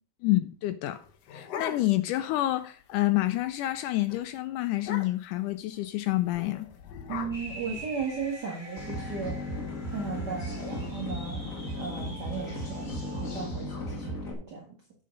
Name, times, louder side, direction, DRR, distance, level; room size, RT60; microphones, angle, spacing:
voice 1, 0.2-1.0 1.3-6.7, left 16 dB, 90° left, 1.8 m, -28 dB
sound 1, 0.9-2.2 2.6-2.7 2.9-3.3 3.6-3.8 4.1-4.2 4.8-5.4 6.3-8.3, left 7 dB, 70° left, 1.5 m, -40 dB
voice 2, 7.1-9.4 9.9-11.4 11.8-14.7, right 5 dB, 40° right, 1.6 m, -36 dB
sound 2, 7.3-13.4, right 1 dB, 5° left, 4.6 m, -46 dB
sound 3, 8.8-14.3, left 1 dB, 30° left, 1.6 m, -36 dB
8.7 x 6.7 x 5.2 m
omnidirectional pair, 4.2 m